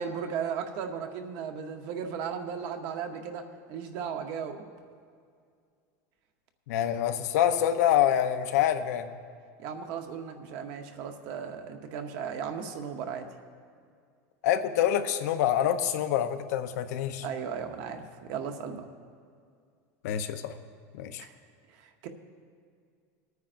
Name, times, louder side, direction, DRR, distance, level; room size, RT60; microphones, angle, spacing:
voice 1, 0.0-4.6 9.6-13.3 17.2-18.8 21.2-21.3 21.8-22.1, right 7 dB, 50° right, 6 dB, 0.9 m, -36 dB
voice 2, 6.7-9.1 14.4-17.2 20.0-20.5 21.0-21.2, left 10 dB, 80° left, 8 dB, 0.7 m, -26 dB
24.5 x 9.3 x 2.6 m, 2.2 s
supercardioid pair, 170°, 9 cm